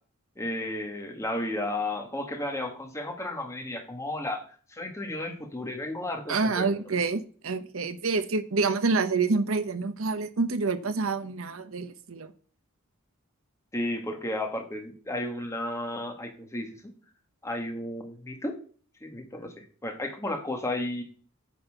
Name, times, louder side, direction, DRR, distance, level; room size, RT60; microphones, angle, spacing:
voice 1, 0.4-4.4 4.7-6.8 13.7-16.7 17.4-18.6 19.0-21.0, left 1 dB, 15° left, 1.8 m, -33 dB
voice 2, 6.3-12.3, right 4 dB, 80° right, 0.9 m, -27 dB
9.3 x 4.3 x 6.5 m
head